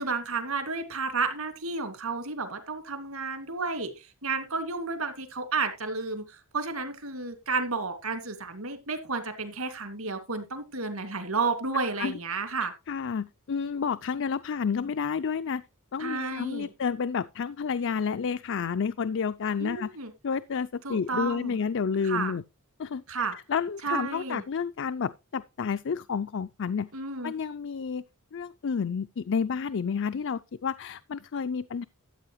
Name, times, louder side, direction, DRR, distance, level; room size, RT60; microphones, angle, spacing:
voice 1, 0.0-12.7 16.0-16.7 19.6-20.1 20.8-21.6 22.0-22.3 23.1-23.4 23.8-24.4 26.9-27.3, right 4 dB, 70° right, 2.4 m, -32 dB
voice 2, 12.9-15.6 15.9-19.9 20.2-22.4 22.8-26.9 27.2-28.0 28.3-31.8, left 6 dB, 60° left, 0.5 m, -30 dB
13.5 x 8.3 x 3.1 m
head